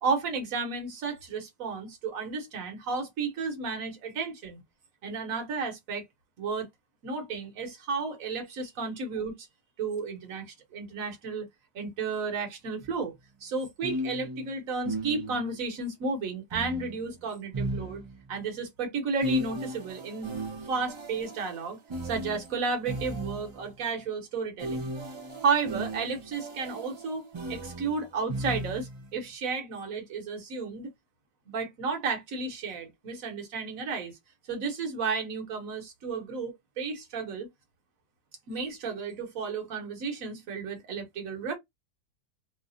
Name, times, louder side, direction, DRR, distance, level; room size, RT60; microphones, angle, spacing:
voice 1, 0.0-4.6 5.0-6.0 6.4-6.7 7.0-9.5 9.8-11.5 11.7-13.1 13.4-18.0 18.3-20.3 20.6-24.9 25.4-30.9 31.5-34.2 34.5-37.5 38.5-41.6, right 4 dB, 60° right, 1.5 m, -33 dB
sound 1, 12.8-13.0 13.8-15.6 16.5-18.4 19.2-23.7 24.6-29.1, right 1 dB, 45° right, 0.3 m, -36 dB
3.2 x 2.3 x 2.5 m
omnidirectional pair, 1.7 m